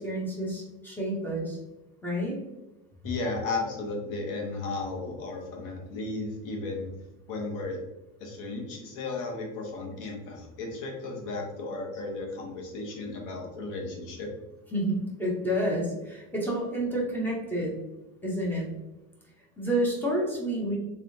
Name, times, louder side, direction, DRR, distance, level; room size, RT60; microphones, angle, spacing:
voice 1, 0.0-1.6 2.0-2.4 14.7-17.7 18.2-18.7 19.6-20.8, right 1 dB, 5° left, -4 dB, 0.6 m, -29 dB
voice 2, 3.0-6.9 7.3-7.8 8.2-14.3, left 3 dB, 50° left, 1 dB, 1.0 m, -34 dB
3.5 x 3.3 x 2.6 m, 1.0 s
cardioid pair, 180°, 40 cm